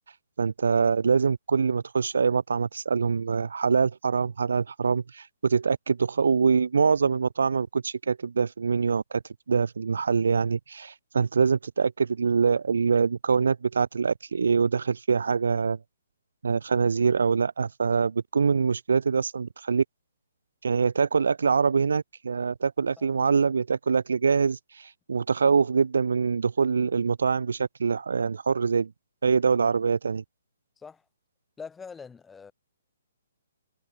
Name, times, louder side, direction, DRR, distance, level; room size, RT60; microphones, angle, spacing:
voice 1, 0.4-9.2 9.5-15.8 16.4-19.8 20.6-28.9 29.2-30.2, right 5 dB, 75° right, 0.5 m, -24 dB
voice 2, 31.6-32.5, left 5 dB, 10° left, 7.5 m, -43 dB
figure-of-eight pair, 135°, 0 cm